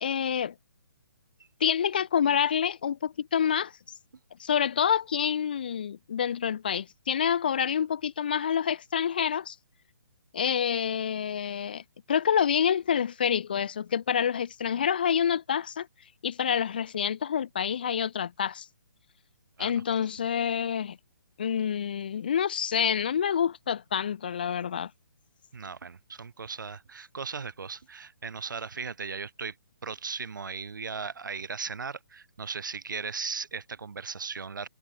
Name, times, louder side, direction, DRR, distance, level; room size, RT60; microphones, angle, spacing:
voice 1, 0.0-0.5 1.6-3.7 4.4-9.6 10.3-11.8 12.1-15.9 16.2-18.7 19.6-21.0 21.4-24.9, left 8 dB, 25° left, 0.4 m, -27 dB
voice 2, 25.5-29.6 29.8-34.7, right 5 dB, 70° right, 2.0 m, -37 dB
hypercardioid pair, 175°, 11 cm